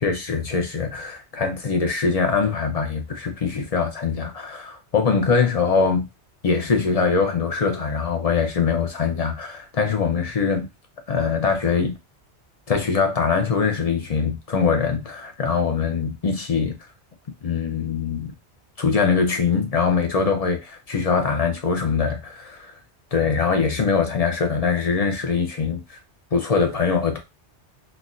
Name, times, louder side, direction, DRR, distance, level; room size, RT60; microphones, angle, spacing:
voice 1, 0.0-6.1 6.4-10.7 11.1-11.9 12.7-16.8 17.4-18.3 18.8-22.7 23.1-26.0 26.3-27.2, left 5 dB, 45° left, 0.6 m, -22 dB
3.9 x 2.4 x 2.5 m
omnidirectional pair, 1.2 m